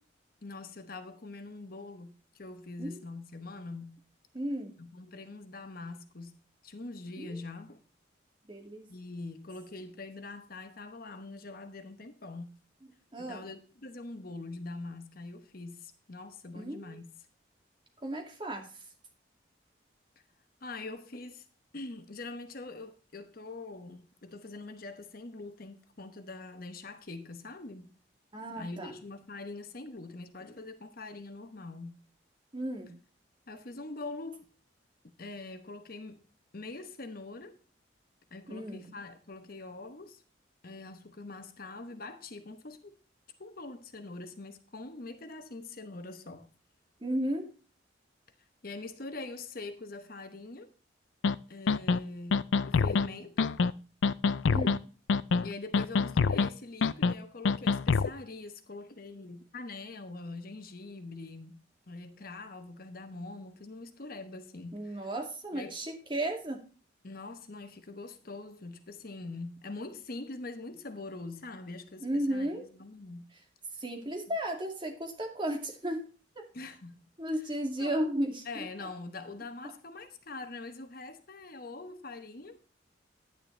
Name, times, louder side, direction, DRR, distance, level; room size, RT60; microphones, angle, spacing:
voice 1, 0.4-4.0 4.8-7.8 8.9-12.6 13.2-17.1 20.6-21.5 21.7-27.9 28.6-32.1 33.5-34.5 35.0-36.2 36.5-37.6 38.3-40.2 40.6-43.0 43.4-46.5 48.6-50.7 51.5-53.6 55.4-65.1 65.5-65.8 67.0-73.2 76.5-77.0 77.8-78.0 78.4-82.6, left 3 dB, 50° left, 1.0 m, -43 dB
voice 2, 4.3-4.7 7.2-7.4 8.5-8.9 13.1-13.5 16.5-17.0 18.0-18.7 28.3-28.9 32.5-32.9 38.5-38.9 47.0-47.5 54.4-54.8 64.7-66.6 72.0-72.6 73.8-76.0 76.4-76.5 77.2-78.9, right 1 dB, 25° right, 2.3 m, -34 dB
sound 1, 51.2-51.3 51.7-52.0 52.3-53.1 53.4-53.7 54.0-54.8 55.1-55.5 55.7-56.5 56.8-57.1 57.4-58.1, left 4 dB, 80° left, 0.5 m, -25 dB
10.5 x 9.8 x 3.3 m
head